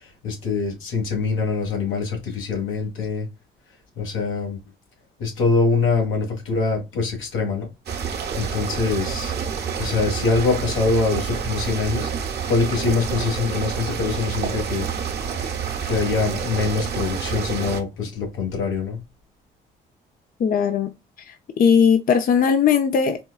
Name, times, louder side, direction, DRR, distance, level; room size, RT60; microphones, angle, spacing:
voice 1, 0.0-3.3 3.9-4.6 5.2-7.7 8.4-9.3 9.8-14.9 15.8-19.0, left 4 dB, 80° left, 1.5 m, -24 dB
sound 1, 7.9-17.8, right 7 dB, 55° right, 1.0 m, -28 dB
voice 2, 20.4-20.9 21.3-23.2, left 7 dB, 45° left, 0.5 m, -18 dB
4.4 x 2.2 x 2.3 m
supercardioid pair, 65°, 20 cm